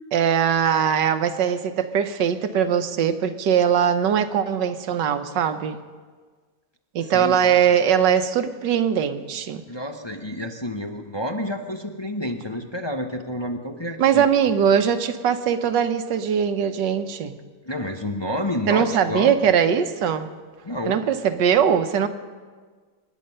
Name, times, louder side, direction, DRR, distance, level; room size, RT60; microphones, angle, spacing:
voice 1, 0.1-5.8 6.9-9.6 14.0-17.4 18.7-20.3 20.8-22.1, right 8 dB, 80° right, 9 dB, 1.5 m, -21 dB
voice 2, 7.0-7.6 9.7-14.5 17.7-19.5 20.6-21.0, left 1 dB, 25° left, 3 dB, 0.6 m, -29 dB
24.5 x 10.5 x 5.5 m, 1.5 s
omnidirectional pair, 1.9 m